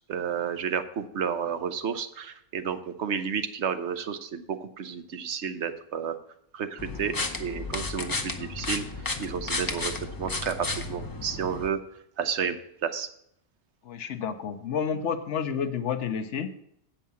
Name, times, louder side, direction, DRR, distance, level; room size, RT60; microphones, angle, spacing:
voice 1, 0.0-6.2 6.5-8.8 9.2-9.9 10.2-11.8 12.2-13.1, right 7 dB, 65° right, 10 dB, 1.0 m, -31 dB
sound 1, 6.8-11.7, left 3 dB, 20° left, 0.6 m, -33 dB
voice 2, 13.8-16.5, left 7 dB, 70° left, 7 dB, 1.1 m, -30 dB
8.4 x 5.6 x 6.9 m, 0.72 s
omnidirectional pair, 1.3 m